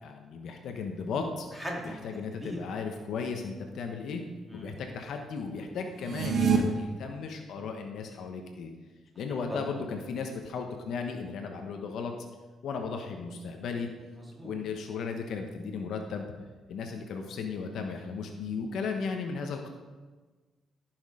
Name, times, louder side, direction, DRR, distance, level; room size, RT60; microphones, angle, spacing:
voice 1, 0.0-1.5 1.8-4.2 4.5-8.7 9.2-12.1 12.6-13.9 14.4-16.3 16.7-19.7, left 5 dB, 70° left, 4 dB, 1.2 m, -35 dB
voice 2, 1.5-2.6 4.5-4.7 9.5-9.6 14.1-14.5, equal, 5° right, -3 dB, 3.4 m, -39 dB
sound 1, 6.0-6.6, right 7 dB, 60° right, 1.5 m, -25 dB
15.0 x 6.4 x 5.0 m, 1.3 s
cardioid pair, 90°, 0 cm